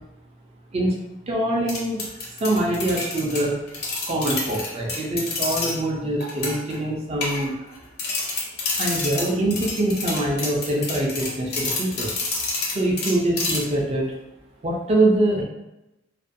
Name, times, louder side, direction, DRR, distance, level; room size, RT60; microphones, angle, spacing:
voice 1, 1.3-2.1 2.4-3.6 4.1-7.7 8.8-12.1 12.7-14.1 14.6-15.4, right 1 dB, 30° right, -2 dB, 0.4 m, -24 dB
sound 1, 1.7-5.8 6.2-6.8 7.2-7.7 8.0-13.8, left 3 dB, 50° left, 0.5 m, -28 dB
2.5 x 2.2 x 2.5 m, 0.94 s
head